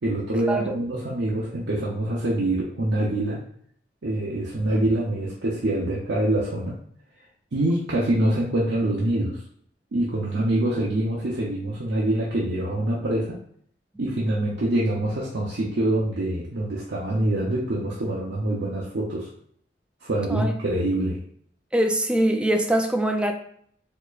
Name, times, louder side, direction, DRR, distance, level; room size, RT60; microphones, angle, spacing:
voice 1, 0.0-3.4 4.0-6.8 7.5-9.4 9.9-13.4 14.0-19.3 20.0-21.2, right 1 dB, 90° right, -5 dB, 0.7 m, -25 dB
voice 2, 21.7-23.3, right 1 dB, 5° right, 4 dB, 0.4 m, -23 dB
4.4 x 2.8 x 2.4 m, 0.64 s
head